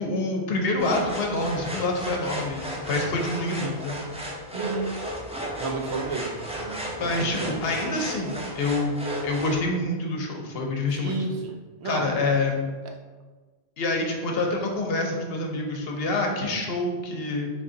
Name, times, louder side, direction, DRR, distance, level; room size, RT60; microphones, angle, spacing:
voice 1, 0.0-2.6 2.9-4.0 7.0-8.9 9.2-11.2 11.8-12.6 13.8-17.5, left 2 dB, 70° left, 1 dB, 0.9 m, -27 dB
sound 1, 0.8-9.6, right 1 dB, 10° right, 0.5 m, -34 dB
voice 2, 4.5-5.0 5.6-7.7 10.9-12.1, right 3 dB, 85° right, 3 dB, 0.8 m, -32 dB
3.7 x 2.6 x 3.7 m, 1.3 s
omnidirectional pair, 1.1 m